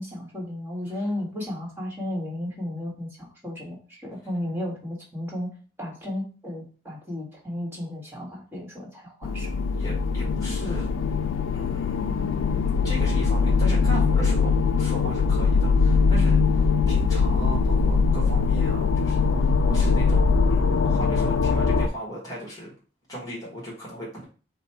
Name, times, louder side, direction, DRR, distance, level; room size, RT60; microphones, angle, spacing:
voice 1, 0.0-5.5 5.8-9.5, left 1 dB, 10° right, -3 dB, 1.5 m, -34 dB
sound 1, 9.2-21.9, left 4 dB, 85° left, 0.4 m, -22 dB
voice 2, 9.8-10.9 11.5-12.2 12.8-14.5 14.8-22.7 23.1-24.2, equal, 20° left, -5 dB, 1.5 m, -37 dB
5.3 x 2.3 x 4.2 m, 0.38 s
head